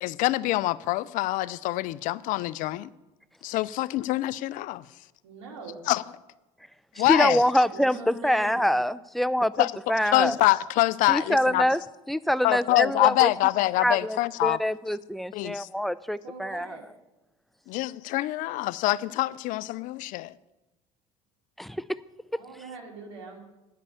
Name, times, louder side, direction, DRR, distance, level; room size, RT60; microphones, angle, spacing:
voice 1, 0.0-2.9 3.4-4.9 5.9-6.0 7.0-7.4 9.6-9.7 10.1-11.6 12.4-14.6 15.3-15.7 17.7-20.3, left 18 dB, 65° left, 0.4 m, -25 dB
voice 2, 5.2-5.8 7.7-8.8 16.2-16.8 22.3-23.4, right 3 dB, 85° right, 2.4 m, -42 dB
voice 3, 7.0-10.4 11.1-11.8 12.1-13.3 13.8-16.8 21.6-21.8, equal, ahead, 0.3 m, -25 dB
10.0 x 5.3 x 8.3 m
supercardioid pair, 85°, 15 cm